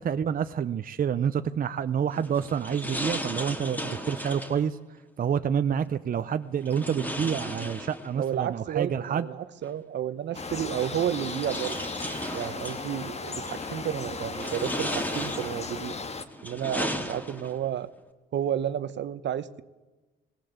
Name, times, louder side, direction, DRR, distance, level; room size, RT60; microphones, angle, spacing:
voice 1, 0.0-4.8 5.2-9.3, right 8 dB, 45° right, 10 dB, 0.8 m, -28 dB
sound 1, 2.1-4.6 6.6-8.3 9.7-9.8 10.7-12.8 13.5-13.8 14.3-15.8 16.3-17.7, equal, 10° left, 2.8 m, -35 dB
voice 2, 8.2-11.7 12.3-15.9 16.4-17.9 18.3-19.6, right 10 dB, 65° right, 14 dB, 1.0 m, -31 dB
sound 2, 10.3-16.2, left 4 dB, 35° left, 1.7 m, -36 dB
19.5 x 18.0 x 8.0 m, 1.2 s
cardioid pair, 90°, 20 cm